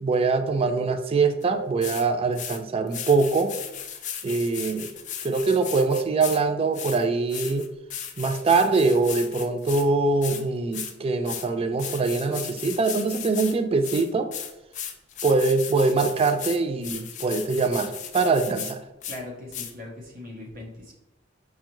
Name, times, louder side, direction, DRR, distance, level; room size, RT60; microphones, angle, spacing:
voice 1, 0.0-3.5 4.2-4.9 5.2-7.7 8.2-14.3 15.2-18.8, right 3 dB, 30° right, 8 dB, 0.3 m, -23 dB
sound 1, 1.4-1.5 1.8-2.0 2.3-2.6 2.9-6.4 6.7-9.9 10.2-10.4 10.7-10.9 11.3-11.5 11.8-13.6 13.8-18.7 19.0-19.2 19.5-19.7, left 9 dB, 40° left, 0.4 m, -36 dB
voice 2, 19.1-20.9, left 1 dB, 50° right, -1 dB, 0.8 m, -39 dB
5.1 x 2.4 x 2.9 m, 0.97 s
head